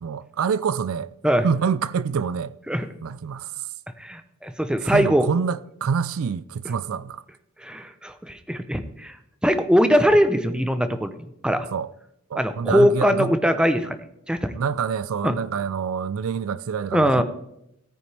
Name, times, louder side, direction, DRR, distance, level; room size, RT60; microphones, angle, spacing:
voice 1, 0.0-1.1 1.4-2.5 3.0-3.5 4.8-7.2 11.7-11.9 12.3-13.3 14.6-17.2, right 6 dB, 65° right, 0.4 m, -26 dB
voice 2, 4.0-5.3 7.6-9.1 9.4-11.1 11.4-11.7 12.3-14.0 14.3-14.5 15.2-15.4 16.9-17.2, equal, 5° right, 0.7 m, -21 dB
17.0 x 9.3 x 3.4 m
head